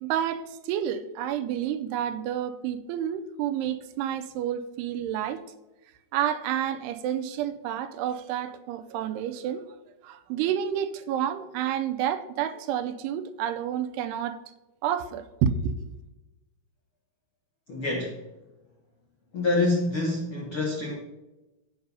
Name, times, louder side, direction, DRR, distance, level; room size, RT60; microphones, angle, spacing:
voice 1, 0.0-5.4 6.1-9.6 10.0-14.4 14.8-15.9, right 9 dB, 85° right, 2.6 m, -29 dB
voice 2, 17.7-18.2 19.3-20.9, left 2 dB, 75° left, 1.2 m, -26 dB
7.9 x 5.4 x 6.7 m
omnidirectional pair, 4.7 m